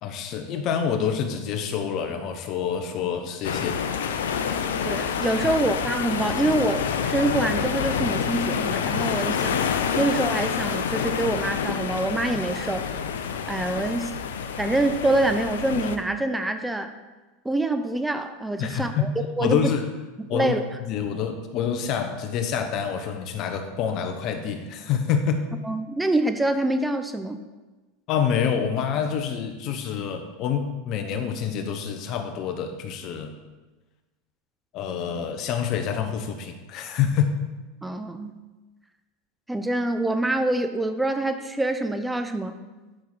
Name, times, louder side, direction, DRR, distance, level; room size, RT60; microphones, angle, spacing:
voice 1, 0.0-4.2 18.6-19.1 19.4-19.9 20.3-25.4 28.1-33.3 34.7-37.3, left 7 dB, 50° left, 6 dB, 1.2 m, -27 dB
sound 1, 3.4-16.0, left 7 dB, 85° left, 0.7 m, -27 dB
voice 2, 4.8-9.6 10.0-12.9 13.5-14.1 14.6-16.9 17.4-19.1 19.4-19.7 20.2-20.6 25.6-27.4 37.8-38.4 39.5-42.6, right 2 dB, 10° right, 8 dB, 0.7 m, -25 dB
10.5 x 6.2 x 4.1 m, 1.2 s
hypercardioid pair, 105°, 0 cm